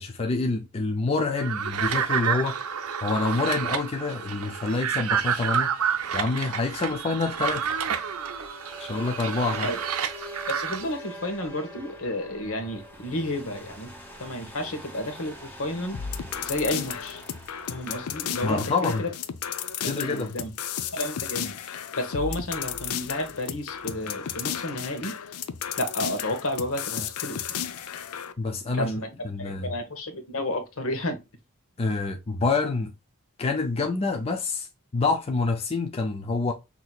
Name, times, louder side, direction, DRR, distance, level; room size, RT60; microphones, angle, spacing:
voice 1, 0.0-2.6 3.0-5.9 6.1-7.7 8.8-9.7 18.4-19.0 19.8-20.3 28.4-28.9 29.2-29.7 31.8-32.9 33.4-34.7 34.9-36.5, left 3 dB, 25° left, 0.4 m, -27 dB
sound 1, 1.4-10.8, right 7 dB, 80° right, 0.6 m, -29 dB
sound 2, 6.7-19.1, equal, 10° left, 0.9 m, -44 dB
voice 2, 10.5-13.9 14.2-16.0 16.4-17.2 17.7-19.1 19.8-20.5 20.9-25.1 25.8-27.4 28.7-31.2, left 1 dB, 70° left, 1.1 m, -31 dB
sound 3, 15.9-28.3, left 8 dB, 85° left, 0.5 m, -34 dB
6.0 x 2.8 x 2.3 m
head